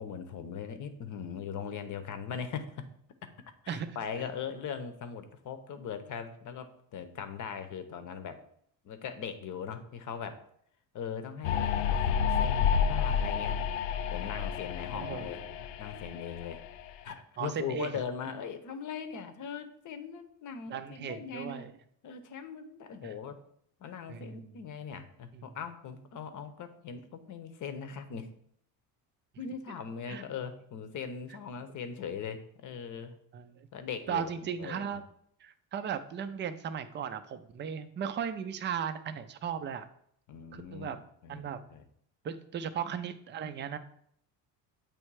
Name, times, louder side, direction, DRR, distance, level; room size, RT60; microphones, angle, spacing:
voice 1, 0.0-2.9 3.2-3.3 3.6-8.4 8.8-10.4 10.9-13.6 14.1-15.4 15.8-16.6 17.0-21.7 22.0-23.4 23.8-28.3 29.4-33.1 33.7-35.0 40.3-41.8, left 7 dB, 45° left, 9 dB, 0.8 m, -40 dB
sound 1, 11.4-16.9, left 7 dB, 85° left, 0.6 m, -30 dB
voice 2, 14.9-15.4 17.4-18.0 20.7-21.7 23.0-23.1 24.1-24.4 25.3-25.5 30.1-30.2 33.3-33.7 34.1-35.1 35.4-39.9 40.5-41.0 41.3-41.6 42.2-43.8, right 8 dB, 25° right, 9 dB, 0.4 m, -36 dB
8.6 x 3.2 x 4.7 m, 0.67 s
cardioid pair, 145°, 43 cm